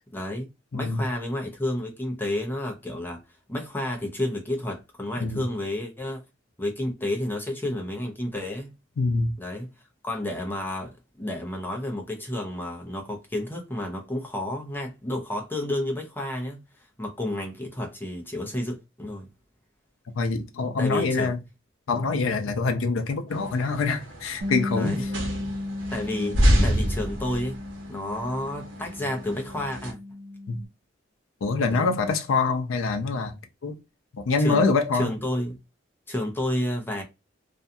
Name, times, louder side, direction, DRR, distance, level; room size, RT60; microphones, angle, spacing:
voice 1, 0.1-3.2 3.5-6.2 6.6-8.7 9.4-9.7 10.0-16.6 17.0-19.3 20.8-21.3 24.7-25.1 25.9-27.6 27.9-30.0 31.7-31.9 34.4-34.6 34.9-35.6 36.1-37.0, left 1 dB, 10° left, 0.5 m, -31 dB
voice 2, 0.7-1.1 5.2-5.4 9.0-9.3 20.2-21.4 21.9-25.1 30.5-30.6 31.4-33.4 33.6-33.8 34.1-35.1, left 4 dB, 85° left, 0.5 m, -25 dB
sound 1, 23.3-29.9, equal, 65° right, 1.0 m, -28 dB
Bass guitar, 24.4-30.7, left 2 dB, 35° right, 0.8 m, -35 dB
2.5 x 2.2 x 2.6 m
head